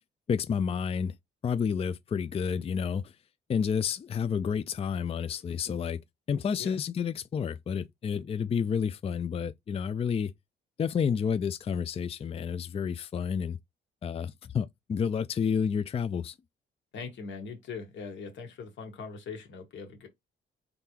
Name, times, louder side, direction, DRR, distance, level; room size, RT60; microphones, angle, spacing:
voice 1, 0.3-1.2 1.4-3.2 3.5-6.0 6.3-10.3 10.8-13.6 14.0-16.4, left 7 dB, 30° left, 0.4 m, -30 dB
voice 2, 16.9-20.1, left 5 dB, 70° left, 1.7 m, -41 dB
3.9 x 3.3 x 2.9 m
cardioid pair, 90°, 20 cm